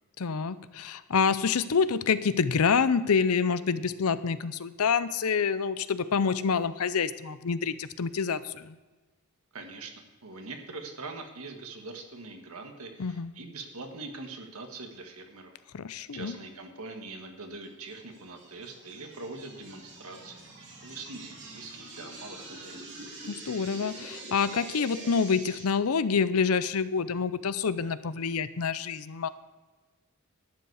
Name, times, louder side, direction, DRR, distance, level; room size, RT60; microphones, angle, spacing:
voice 1, 0.2-8.8 13.0-13.3 15.7-16.4 23.3-29.3, left 5 dB, 80° left, 14 dB, 0.6 m, -27 dB
voice 2, 9.5-15.5 16.1-20.5 20.8-22.9, right 3 dB, 80° right, 4 dB, 1.7 m, -43 dB
sound 1, 17.9-25.6, right 2 dB, 55° right, 2.8 m, -45 dB
11.5 x 9.8 x 4.8 m, 1.2 s
head